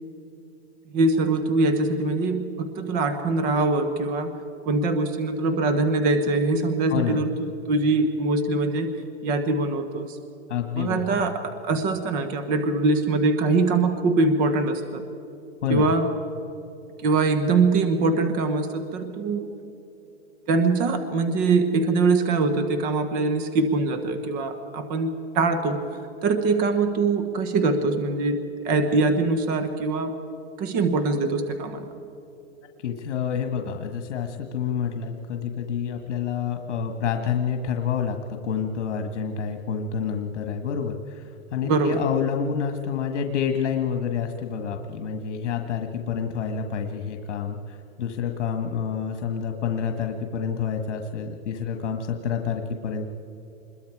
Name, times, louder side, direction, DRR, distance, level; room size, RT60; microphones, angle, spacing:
voice 1, 0.9-4.3 4.6-8.9 9.2-10.2 10.7-15.0 15.7-16.1 17.0-19.5 20.5-25.8 26.2-30.1 30.6-31.9 41.6-42.0, right 3 dB, 25° right, 8 dB, 1.1 m, -23 dB
voice 2, 6.9-7.2 10.5-11.3 15.6-15.9 32.8-38.2 38.4-53.1, left 7 dB, 75° left, 5 dB, 1.7 m, -28 dB
26.0 x 22.0 x 4.8 m, 2.9 s
supercardioid pair, 165°, 35 cm